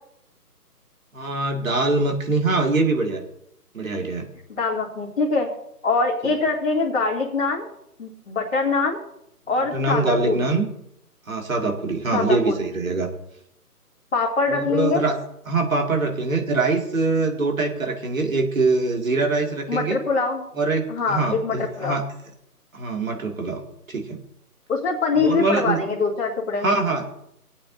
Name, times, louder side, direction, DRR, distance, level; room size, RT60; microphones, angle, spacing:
voice 1, 1.1-3.2 3.7-4.2 6.2-6.3 9.7-10.7 11.3-13.1 14.5-15.2 15.5-20.0 20.6-22.1 22.7-23.6 23.9-24.2 25.2-25.8 26.6-27.0, right 3 dB, 55° right, 2 dB, 2.3 m, -23 dB
voice 2, 4.5-5.5 5.8-7.7 8.0-9.0 9.5-10.5 12.1-12.6 14.1-15.0 19.7-20.4 20.9-22.0 24.7-26.7, left 4 dB, 50° left, -7 dB, 2.6 m, -23 dB
21.5 x 8.6 x 2.7 m, 0.74 s
figure-of-eight pair, 150°, 47 cm